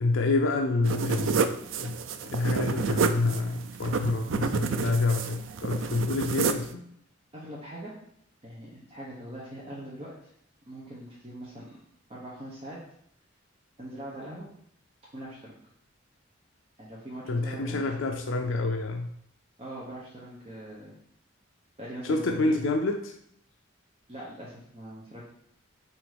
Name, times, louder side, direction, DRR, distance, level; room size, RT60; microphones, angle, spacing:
voice 1, 0.0-1.5 1.8-6.8 17.3-19.1 22.0-23.1, left 3 dB, 70° left, 4 dB, 0.5 m, -28 dB
sound 1, 0.8-6.7, right 5 dB, 70° right, 0.4 m, -29 dB
voice 2, 7.3-7.9 8.4-10.3 10.7-11.8 12.1-12.8 13.8-14.5 15.1-15.6 16.8-17.9 19.6-20.9 21.8-22.6 24.1-25.3, right 1 dB, 30° right, -6 dB, 1.1 m, -42 dB
6.4 x 3.0 x 5.1 m, 0.70 s
head